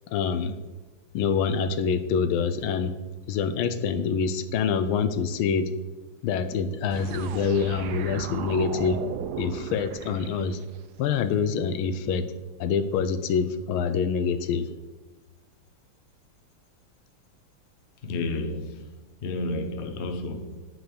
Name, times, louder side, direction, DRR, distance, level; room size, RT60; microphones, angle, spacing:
voice 1, 0.1-0.5 1.1-3.0 3.3-5.7 6.2-9.0 9.4-10.6 11.0-12.3 12.6-14.7, left 6 dB, 80° left, 11 dB, 1.4 m, -26 dB
sound 1, 6.9-10.8, right 8 dB, 90° right, 0.9 m, -36 dB
voice 2, 18.0-20.7, left 2 dB, 50° left, 6 dB, 0.8 m, -32 dB
7.8 x 4.7 x 7.0 m, 1.2 s
omnidirectional pair, 2.3 m